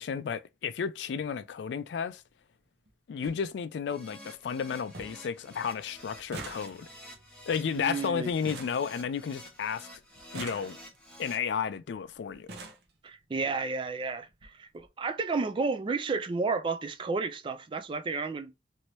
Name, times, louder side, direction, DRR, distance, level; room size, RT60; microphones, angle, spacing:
voice 1, 0.0-2.2 3.1-6.9 7.5-9.9 10.3-10.8 11.2-12.5, left 6 dB, 70° left, 0.3 m, -32 dB
sound 1, 1.1-1.3 2.5-2.6 2.9-3.0 3.2-3.4 3.9-4.4 4.6-4.7 4.9-5.3 5.6-9.6 10.2-11.1 11.9-12.0 12.3-12.9 13.8-13.9 14.3-14.5 14.7-14.9, right 3 dB, 60° right, 0.7 m, -45 dB
Keyboard (musical), 3.9-11.4, equal, 5° left, 0.9 m, -50 dB
voice 2, 7.7-8.3 13.0-18.5, right 4 dB, 25° right, 0.3 m, -32 dB
2.9 x 2.7 x 3.0 m
head